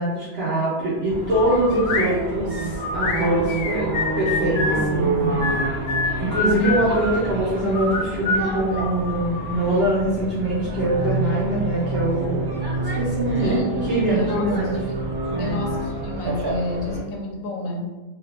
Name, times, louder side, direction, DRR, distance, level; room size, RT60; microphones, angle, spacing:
voice 1, 0.0-3.9 4.2-5.5 6.2-12.5 13.0-14.8 15.3-15.6, right 1 dB, 55° right, -9 dB, 0.9 m, -23 dB
sound 1, 1.1-17.0, right 2 dB, 35° right, 0.4 m, -28 dB
sound 2, 1.3-2.1 2.8-4.9 5.4-7.2 7.7-9.6, left 3 dB, 65° left, 0.7 m, -26 dB
voice 2, 13.4-14.7 15.4-17.8, left 2 dB, 85° left, 0 dB, 1.1 m, -30 dB
3.5 x 2.3 x 2.8 m, 1.2 s
omnidirectional pair, 1.4 m